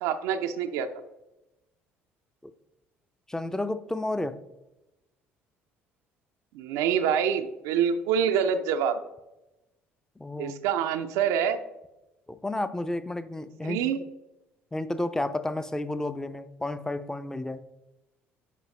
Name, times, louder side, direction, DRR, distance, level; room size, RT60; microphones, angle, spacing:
voice 1, 0.0-0.9 6.5-9.0 10.4-11.6 13.7-14.0, right 8 dB, 60° right, 6 dB, 0.4 m, -26 dB
voice 2, 3.3-4.4 10.2-10.5 12.3-13.8 14.7-17.6, left 2 dB, 10° left, 12 dB, 0.5 m, -31 dB
11.0 x 4.7 x 3.1 m, 0.97 s
figure-of-eight pair, 50°, 6 cm